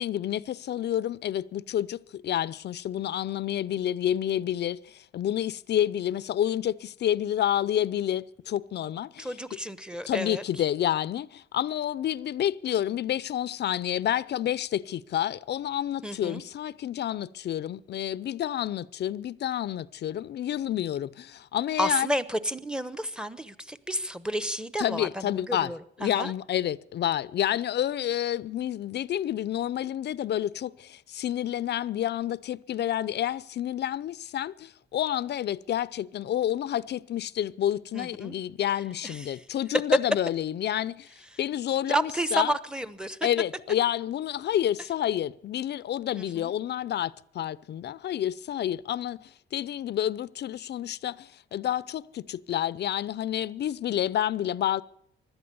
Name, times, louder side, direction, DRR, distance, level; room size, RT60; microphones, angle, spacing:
voice 1, 0.0-9.6 10.0-22.1 24.8-25.7 26.0-41.1 41.4-42.6 43.2-54.8, left 11 dB, 60° left, 0.6 m, -29 dB
voice 2, 9.2-10.4 16.0-16.4 21.8-26.3 37.9-38.3 39.0-39.3 41.9-43.2 46.1-46.5, right 1 dB, 5° right, 1.0 m, -31 dB
17.0 x 12.0 x 6.9 m
cardioid pair, 90°, 20 cm